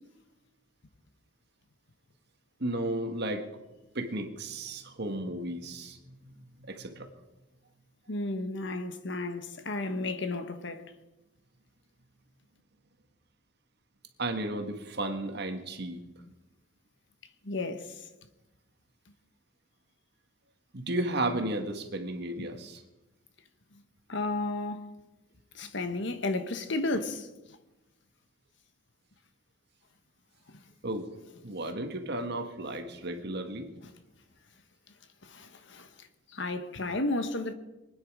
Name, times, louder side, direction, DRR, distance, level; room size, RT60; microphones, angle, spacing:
voice 1, 2.6-3.5 3.9-7.1 14.2-16.0 20.7-22.8 30.8-31.1 31.4-33.7, right 1 dB, 60° right, 1.8 m, -34 dB
voice 2, 8.1-10.8 17.4-18.0 22.4-22.5 24.1-24.9 25.5-27.3 35.2-36.1 36.3-37.5, left 2 dB, 70° left, 1.3 m, -33 dB
23.5 x 9.7 x 5.0 m
head